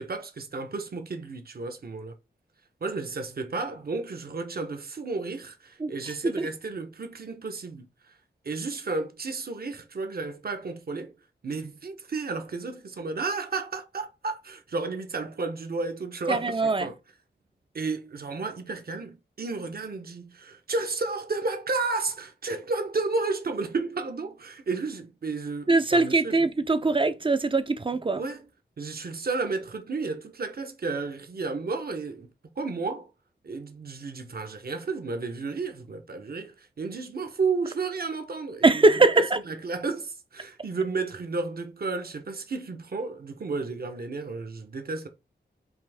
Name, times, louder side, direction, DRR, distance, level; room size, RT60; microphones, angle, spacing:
voice 1, 0.0-2.2 2.8-8.1 8.4-11.1 11.4-16.9 17.7-26.4 28.1-28.4 28.8-32.3 32.6-33.1 33.4-38.8 39.5-45.1, right 3 dB, 55° right, 0.9 m, -32 dB
voice 2, 5.8-6.5 16.3-16.9 25.7-28.2 38.6-39.4, right 3 dB, 25° right, 0.5 m, -22 dB
5.6 x 2.6 x 3.4 m
wide cardioid pair, 90°, 19 cm